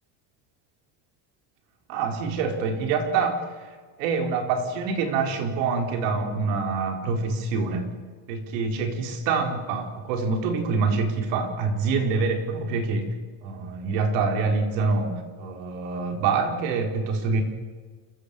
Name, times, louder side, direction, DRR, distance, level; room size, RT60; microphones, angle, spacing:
voice 1, 1.9-3.7 4.0-7.9 8.3-13.2 13.4-17.4, right 4 dB, 85° right, 5 dB, 4.3 m, -26 dB
29.0 x 16.0 x 6.7 m, 1.5 s
cardioid pair, 120°, 49 cm